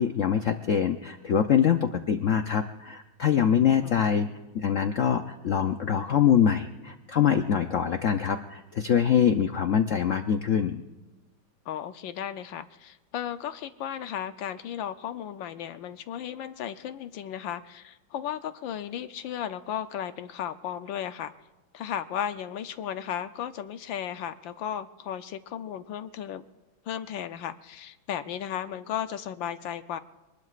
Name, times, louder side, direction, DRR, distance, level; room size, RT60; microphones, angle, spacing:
voice 1, 0.0-4.3 4.5-10.8, left 8 dB, 90° left, 7 dB, 0.6 m, -24 dB
voice 2, 11.7-21.3 21.7-26.4 26.9-30.0, left 9 dB, 75° left, 10 dB, 1.3 m, -35 dB
25.5 x 20.0 x 2.5 m, 1.1 s
omnidirectional pair, 2.3 m